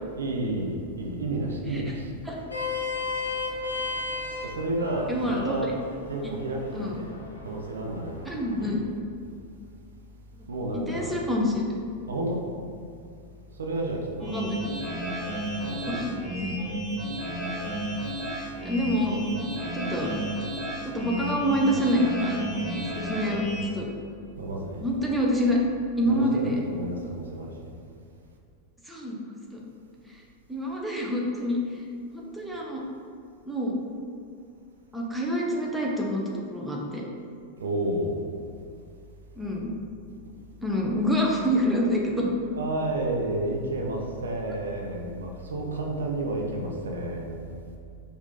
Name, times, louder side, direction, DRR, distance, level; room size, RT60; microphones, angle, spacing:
voice 1, 0.1-2.1 4.4-5.7 6.1-7.1 7.4-8.2 8.6-8.9 10.5-11.1 12.1-12.4 13.6-14.4 15.6-16.1 24.4-24.9 26.0-27.7 37.6-38.2 42.5-47.4, right 1 dB, 70° right, 1 dB, 0.5 m, -31 dB
Vehicle horn car horn honking, 2.3-8.7, left 4 dB, 75° left, 0.6 m, -35 dB
voice 2, 5.1-5.7 6.2-6.3 6.7-7.0 8.2-8.8 10.7-11.6 14.2-14.6 15.9-16.5 18.3-19.2 19.7-20.1 20.8-22.4 22.9-23.4 23.7-23.9 24.8-25.6 26.0-26.6 28.9-29.2 29.5-29.6 30.1-30.2 30.5-31.8 32.1-32.8 33.4-33.8 34.9-37.0 39.4-39.7 40.6-42.3, equal, 5° right, -3 dB, 0.7 m, -27 dB
sound 1, 14.2-23.7, equal, 25° right, 1.4 m, -32 dB
4.9 x 2.6 x 3.8 m, 2.4 s
figure-of-eight pair, 90°, 0 cm